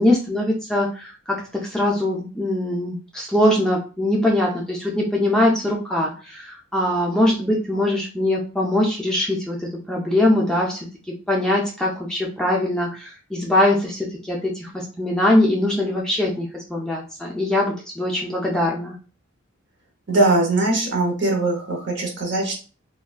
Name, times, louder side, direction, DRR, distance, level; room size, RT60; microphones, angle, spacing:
voice 1, 0.0-10.9 11.3-18.9, left 1 dB, 5° left, -3 dB, 0.3 m, -22 dB
voice 2, 20.1-22.6, right 2 dB, 55° right, 0 dB, 0.8 m, -21 dB
3.4 x 2.2 x 2.3 m, 0.36 s
head